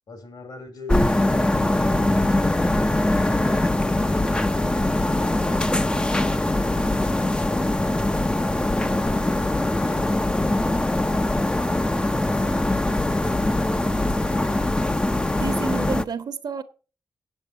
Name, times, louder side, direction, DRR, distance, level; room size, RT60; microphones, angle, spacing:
voice 1, 0.1-4.6 5.1-9.4 9.8-11.7 12.3-12.8, left 3 dB, 65° left, 3.3 m, -43 dB
sound 1, 0.9-16.0, left 1 dB, 15° left, 0.6 m, -22 dB
voice 2, 15.4-16.6, right 6 dB, 70° right, 1.2 m, -30 dB
8.3 x 8.1 x 6.6 m
wide cardioid pair, 100°, 7 cm